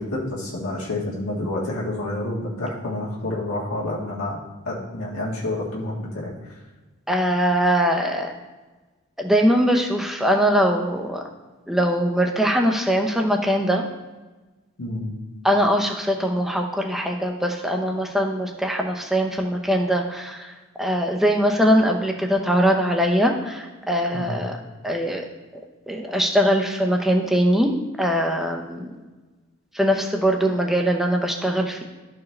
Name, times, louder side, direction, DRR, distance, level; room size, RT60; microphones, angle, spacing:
voice 1, 0.0-4.4 4.6-6.6 14.8-15.1 24.1-24.4, left 2 dB, 90° left, -5 dB, 1.5 m, -29 dB
voice 2, 7.1-8.3 9.2-11.3 11.7-13.8 15.4-24.6 24.8-25.3 25.9-27.7 28.0-29.0 29.7-31.8, equal, ahead, 2 dB, 0.6 m, -21 dB
12.5 x 4.7 x 3.2 m, 1.2 s
head